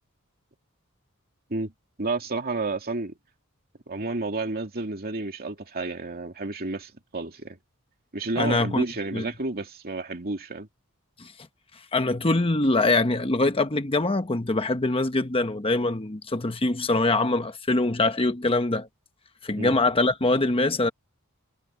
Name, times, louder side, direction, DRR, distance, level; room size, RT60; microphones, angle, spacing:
voice 1, 2.0-3.1 3.9-7.6 8.1-10.7 19.6-19.8, right 3 dB, 45° right, 2.6 m, -31 dB
voice 2, 8.4-8.8 9.1-9.3 11.2-11.3 11.9-18.9 19.4-20.9, left 2 dB, 25° left, 1.1 m, -23 dB
head